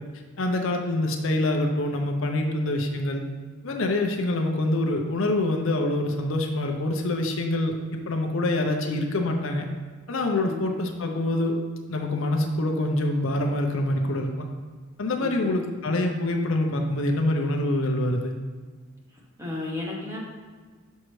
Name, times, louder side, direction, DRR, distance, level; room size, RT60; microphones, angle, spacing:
voice 1, 0.4-3.2 3.6-7.7 8.1-9.6 10.1-11.6 11.9-14.5 15.0-18.3, left 1 dB, 65° left, 3 dB, 0.6 m, -25 dB
voice 2, 15.2-15.6 19.4-20.2, left 2 dB, 15° right, -3 dB, 1.0 m, -34 dB
6.2 x 5.5 x 3.1 m, 1.5 s
head